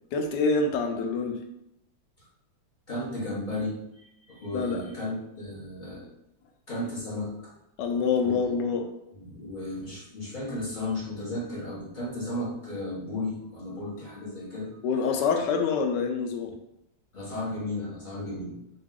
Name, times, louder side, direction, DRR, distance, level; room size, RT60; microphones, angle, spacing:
voice 1, 0.1-1.4 4.5-4.8 7.8-8.9 14.8-16.5, left 5 dB, 70° left, 4 dB, 1.1 m, -26 dB
voice 2, 2.9-6.1 6.7-7.5 8.2-8.7 9.1-14.8 17.1-18.6, left 1 dB, 45° left, -5 dB, 0.6 m, -34 dB
3.9 x 3.2 x 3.6 m, 0.83 s
omnidirectional pair, 2.2 m